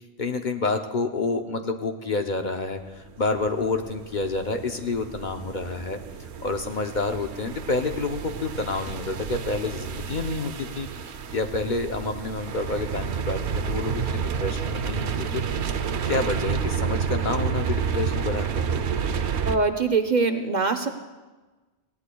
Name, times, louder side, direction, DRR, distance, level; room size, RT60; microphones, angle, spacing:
voice 1, 0.2-6.0 6.4-10.9 11.3-15.4 16.1-18.7, left 3 dB, 50° left, 5 dB, 0.8 m, -28 dB
sound 1, 3.1-19.6, right 6 dB, 80° right, 1.0 m, -30 dB
voice 2, 19.5-20.9, right 4 dB, 50° right, 6 dB, 0.7 m, -23 dB
20.0 x 15.5 x 2.3 m, 1.2 s
omnidirectional pair, 1.1 m